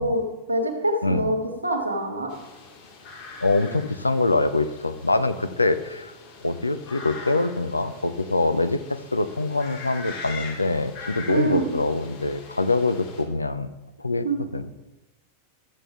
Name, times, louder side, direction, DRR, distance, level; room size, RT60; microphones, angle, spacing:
voice 1, 0.0-2.3 11.3-11.7 14.2-14.4, right 1 dB, 85° right, 2 dB, 1.4 m, -25 dB
sound 1, 2.3-13.2, left 4 dB, 45° left, 2.6 m, -42 dB
voice 2, 3.4-6.1 6.4-13.7 14.0-14.7, left 2 dB, 80° left, 11 dB, 0.5 m, -24 dB
12.5 x 7.3 x 3.6 m, 1.1 s
figure-of-eight pair, 90°, 0 cm